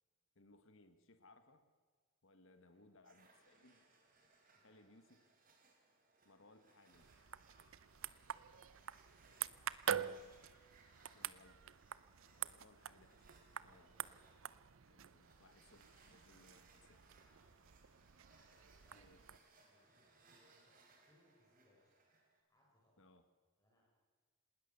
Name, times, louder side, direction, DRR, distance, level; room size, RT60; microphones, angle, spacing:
voice 1, 0.3-1.7 2.2-3.9 4.5-5.2 6.2-7.1 11.1-11.7 12.5-13.3 13.6-13.9 14.8-17.1 18.9-19.2 23.0-23.2, left 2 dB, 65° left, 9 dB, 1.5 m, -66 dB
voice 2, 2.5-2.9 4.5-5.0 8.8-9.8 12.2-12.5 13.6-14.4 17.1-18.0 18.8-19.2 19.7-21.9 22.5-23.1 23.6-23.9, left 1 dB, 15° left, -3 dB, 5.7 m, -75 dB
sound 1, 3.0-22.4, right 3 dB, 40° right, 3.6 m, -70 dB
sound 2, 6.9-19.4, right 8 dB, 70° right, 0.6 m, -47 dB
19.5 x 19.0 x 6.9 m, 1.5 s
head